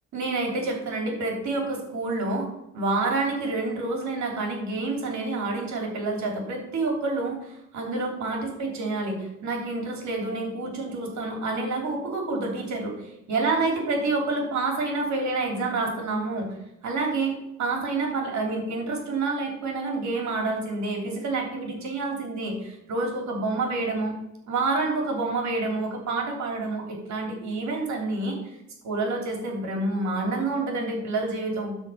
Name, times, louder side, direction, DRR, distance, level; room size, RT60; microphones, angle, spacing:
voice 1, 0.1-2.5 2.7-16.5 16.8-24.1 24.5-28.6 28.8-31.8, right 3 dB, 70° right, 1 dB, 3.4 m, -28 dB
12.5 x 4.5 x 5.8 m, 0.86 s
cardioid pair, 90°, 30 cm